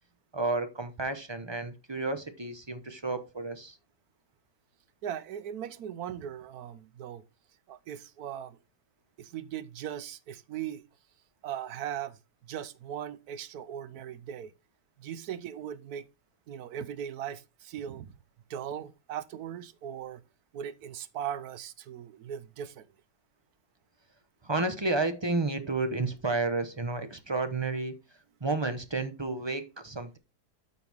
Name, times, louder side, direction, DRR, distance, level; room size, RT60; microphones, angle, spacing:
voice 1, 0.3-3.8 24.4-27.9 28.4-30.2, right 3 dB, 25° right, 0.6 m, -31 dB
voice 2, 5.0-7.2 7.7-8.6 9.2-10.8 11.4-12.2 12.5-14.5 15.0-16.1 16.5-18.1 18.5-20.2 20.5-22.9, right 9 dB, 70° right, 1.2 m, -39 dB
12.5 x 4.5 x 3.5 m
omnidirectional pair, 1.8 m